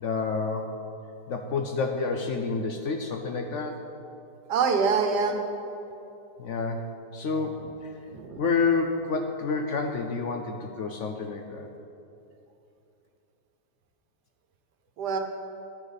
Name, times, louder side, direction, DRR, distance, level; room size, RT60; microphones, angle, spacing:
voice 1, 0.0-0.8 1.3-3.8 6.4-7.9 8.4-11.7, left 4 dB, 60° left, 4 dB, 0.8 m, -29 dB
voice 2, 4.5-5.4 8.1-8.4 15.0-15.2, right 5 dB, 85° right, 5 dB, 1.5 m, -25 dB
10.5 x 10.0 x 4.0 m, 2.8 s
omnidirectional pair, 1.7 m